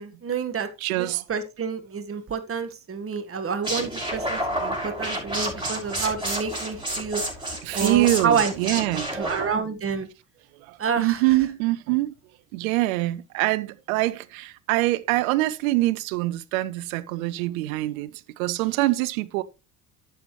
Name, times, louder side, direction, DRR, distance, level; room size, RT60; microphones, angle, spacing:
voice 1, 0.0-7.2 7.7-8.5 9.1-10.1 10.8-11.4, right 6 dB, 30° right, 1.6 m, -28 dB
voice 2, 0.8-1.2 7.6-9.1 10.7-12.1 12.5-18.1 18.4-19.4, right 18 dB, 80° right, 0.8 m, -24 dB
sound 1, 3.6-9.6, right 1 dB, 10° right, 5.9 m, -30 dB
11.5 x 7.9 x 3.2 m
hypercardioid pair, 65°, 41 cm